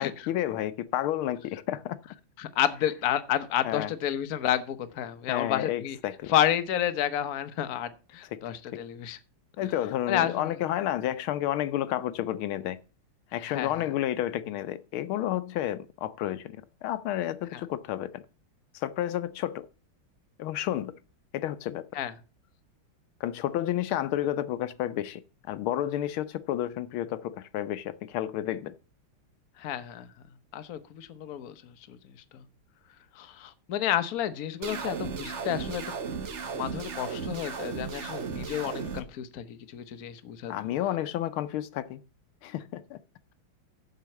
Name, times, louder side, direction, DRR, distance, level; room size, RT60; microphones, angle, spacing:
voice 1, 0.0-2.0 3.6-3.9 5.3-6.3 8.3-8.4 8.7-8.8 9.6-12.8 13.3-18.2 18.7-19.6 20.4-20.9 21.3-21.8 23.2-25.2 25.5-28.7 40.5-42.0 42.4-43.0, left 12 dB, 85° left, 1.5 m, -31 dB
voice 2, 2.4-6.0 6.3-9.2 9.6-9.7 10.1-10.5 13.4-13.7 17.5-17.6 21.9-22.1 29.6-30.1 30.5-32.0 32.3-32.4 33.1-35.8 36.5-40.5, left 11 dB, 55° left, 1.2 m, -30 dB
sound 1, 34.6-39.0, right 6 dB, 45° right, 1.0 m, -35 dB
7.5 x 6.7 x 7.1 m
omnidirectional pair, 2.3 m